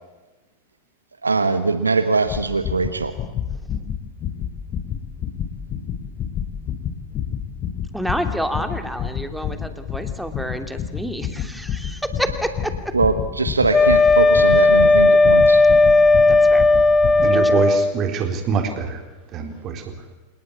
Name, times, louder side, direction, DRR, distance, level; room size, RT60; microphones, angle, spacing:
voice 1, 1.2-3.1 12.9-15.6, right 3 dB, 80° right, 10 dB, 1.3 m, -21 dB
sound 1, 2.3-17.3, left 8 dB, 30° left, 3.3 m, -30 dB
voice 2, 7.9-12.7 16.3-16.7 17.3-17.6, equal, ahead, 7 dB, 2.8 m, -28 dB
Wind instrument woodwind instrument, 13.7-18.0, left 3 dB, 15° left, 1.1 m, -14 dB
voice 3, 17.2-19.0 19.3-19.9, right 6 dB, 30° right, 5 dB, 4.0 m, -24 dB
27.5 x 19.0 x 8.4 m, 1.2 s
figure-of-eight pair, 90°, 0 cm